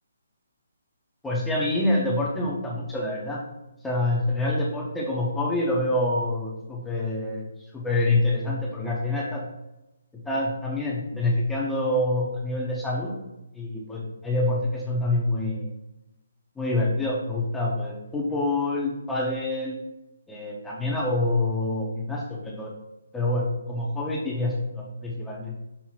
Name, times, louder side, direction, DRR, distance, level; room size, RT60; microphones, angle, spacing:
voice 1, 1.2-3.4 3.8-7.5 7.7-9.4 10.3-13.1 13.5-15.7 16.6-19.8 20.3-22.7 23.1-25.6, left 2 dB, 5° left, -4 dB, 0.6 m, -26 dB
5.5 x 2.0 x 4.3 m, 0.92 s
hypercardioid pair, 160°, 0 cm